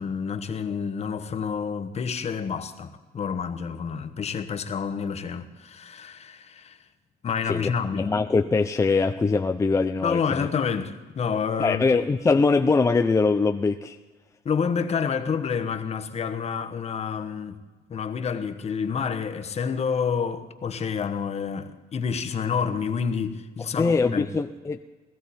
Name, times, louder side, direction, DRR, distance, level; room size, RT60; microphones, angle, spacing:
voice 1, 0.0-6.8 7.2-8.1 10.0-11.8 14.4-17.5 17.9-24.3, left 6 dB, 40° left, 1.1 m, -28 dB
voice 2, 7.5-10.5 11.6-14.0 23.8-24.8, left 4 dB, 20° left, 0.5 m, -22 dB
18.5 x 13.5 x 4.2 m
cardioid pair, 110°, 17 cm